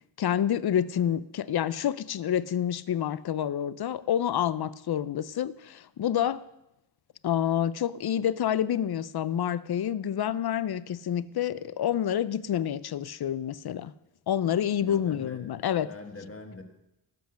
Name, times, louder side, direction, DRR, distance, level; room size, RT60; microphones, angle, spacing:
voice 1, 0.2-6.4 7.2-13.9 14.3-15.9, left 10 dB, 55° left, 18 dB, 0.5 m, -28 dB
voice 2, 14.8-15.5 15.8-16.6, left 3 dB, 30° left, 5 dB, 1.6 m, -43 dB
17.5 x 8.2 x 6.4 m, 0.90 s
wide cardioid pair, 175°, 47 cm